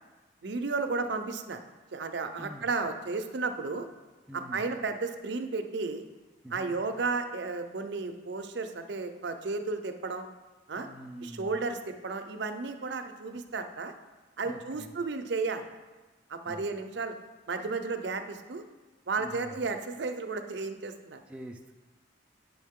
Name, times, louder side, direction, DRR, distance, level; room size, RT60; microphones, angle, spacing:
voice 1, 0.4-1.6 1.9-3.9 4.3-6.1 6.5-10.2 10.7-10.9 11.2-13.9 14.4-15.6 16.3-17.1 17.5-18.6 19.1-21.2, right 4 dB, 60° right, 7 dB, 0.6 m, -33 dB
voice 2, 2.4-2.7 4.3-4.7 6.4-6.8 10.7-11.6 14.4-14.9 16.4-16.7 19.2-19.7 21.3-21.7, right 1 dB, 5° right, 1 dB, 0.4 m, -45 dB
9.2 x 6.1 x 3.6 m, 1.2 s
head